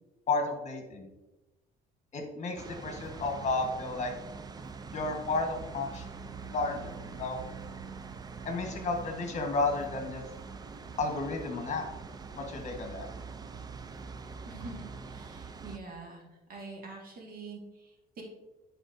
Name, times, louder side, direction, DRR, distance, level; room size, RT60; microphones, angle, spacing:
voice 1, 0.3-1.1 2.1-4.1 4.9-6.0 6.5-7.4 8.4-10.2 11.0-11.8 12.3-13.1, left 3 dB, 45° left, 3 dB, 1.3 m, -32 dB
sound 1, 2.6-15.8, right 5 dB, 25° right, 0.4 m, -44 dB
voice 2, 14.5-16.2 16.5-18.2, right 3 dB, 60° right, 0 dB, 1.9 m, -45 dB
9.9 x 4.6 x 2.6 m, 1.0 s
cardioid pair, 110°, 17 cm